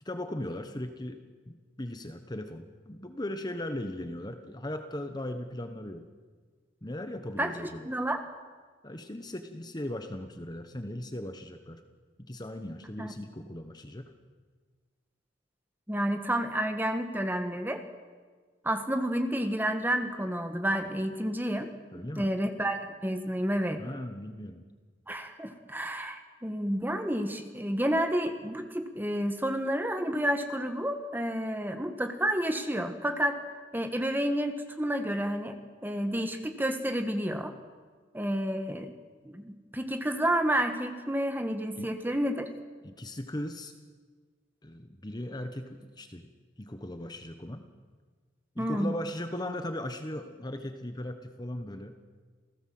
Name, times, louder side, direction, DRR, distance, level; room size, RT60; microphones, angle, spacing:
voice 1, 0.0-6.1 6.8-7.9 8.8-11.8 12.2-14.1 21.9-22.3 23.8-24.6 41.8-41.9 42.8-43.7 44.6-46.3 46.6-47.7 48.5-52.0, left 1 dB, 20° left, 7 dB, 1.2 m, -38 dB
voice 2, 7.8-8.2 13.0-13.1 15.9-17.8 18.6-21.7 22.2-23.8 25.1-33.4 33.7-37.5 38.1-38.9 39.2-42.5 48.6-48.9, equal, 10° right, 6 dB, 1.7 m, -30 dB
28.5 x 17.0 x 7.8 m, 1.5 s
head